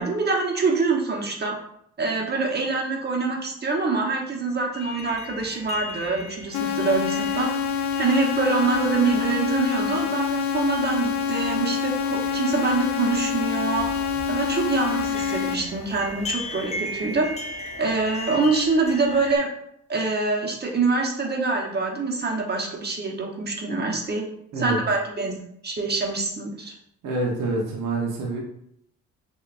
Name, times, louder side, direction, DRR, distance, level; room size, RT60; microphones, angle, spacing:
voice 1, 0.0-1.5 2.0-7.5 8.0-13.9 14.3-17.3 17.8-19.5 19.9-24.2 24.6-25.4 25.6-26.7, right 3 dB, 35° right, 0 dB, 1.2 m, -25 dB
sound 1, 4.7-19.4, left 3 dB, 20° left, 0.8 m, -38 dB
sound 2, 6.5-15.5, left 6 dB, 70° left, 0.7 m, -26 dB
voice 2, 27.0-28.4, right 2 dB, 85° right, -1 dB, 1.1 m, -27 dB
6.8 x 2.8 x 2.6 m, 0.73 s
cardioid pair, 90°, 30 cm